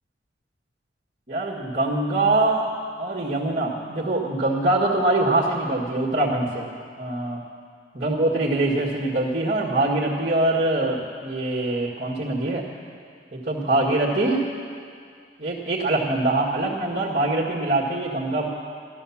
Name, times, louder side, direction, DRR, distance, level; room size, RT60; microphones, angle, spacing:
voice 1, 1.3-2.7 3.0-6.7 7.0-7.4 7.9-12.6 13.3-14.4 15.4-18.5, right 2 dB, 45° right, -6 dB, 1.7 m, -23 dB
13.5 x 12.0 x 7.2 m, 2.2 s
head